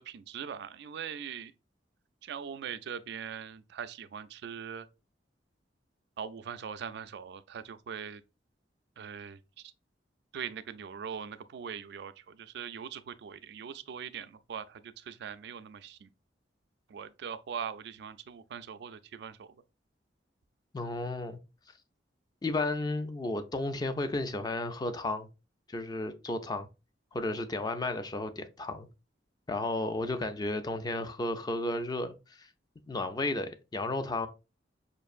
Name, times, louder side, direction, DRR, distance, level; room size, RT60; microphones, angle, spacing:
voice 1, 0.0-1.5 2.2-4.9 6.2-8.2 9.0-9.7 10.3-16.1 16.9-19.6, right 7 dB, 65° right, 0.3 m, -41 dB
voice 2, 20.7-21.4 22.4-25.3 25.7-26.7 27.1-28.9 29.5-32.5 32.9-34.3, left 2 dB, 25° left, 0.4 m, -33 dB
5.2 x 2.5 x 2.4 m
head